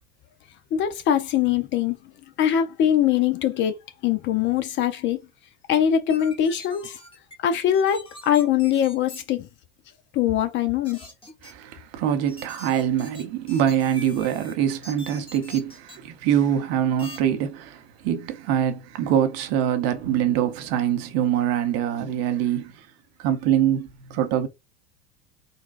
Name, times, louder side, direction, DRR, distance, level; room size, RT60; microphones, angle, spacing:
voice 1, 0.7-2.0 2.4-5.2 5.7-7.0 7.4-9.5 10.1-11.0, left 10 dB, 40° left, 0.5 m, -22 dB
sound 1, 6.1-7.3 7.7-9.2 10.8-11.5 12.3-14.5 14.8-16.0 17.0-17.2, left 1 dB, 15° left, 1.1 m, -43 dB
voice 2, 11.4-22.9 23.2-24.5, right 10 dB, 50° right, 0.8 m, -24 dB
4.0 x 2.2 x 2.5 m
hypercardioid pair, 80°, 31 cm